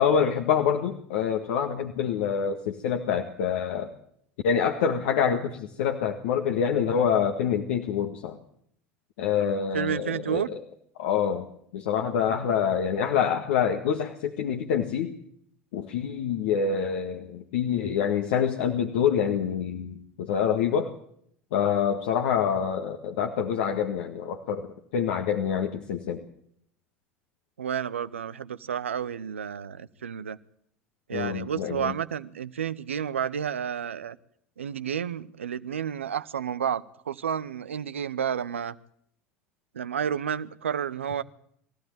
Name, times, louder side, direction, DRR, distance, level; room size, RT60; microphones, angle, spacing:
voice 1, 0.0-3.9 4.4-8.4 9.2-10.6 11.0-11.5 11.7-15.1 15.7-20.9 21.5-26.2 31.1-31.9, left 7 dB, 70° left, 3 dB, 1.8 m, -26 dB
voice 2, 9.7-10.5 27.6-30.4 31.1-34.2 34.6-38.8 39.7-41.2, right 8 dB, 85° right, 15 dB, 0.8 m, -31 dB
22.5 x 15.0 x 9.2 m, 0.69 s
hypercardioid pair, 75°, 7 cm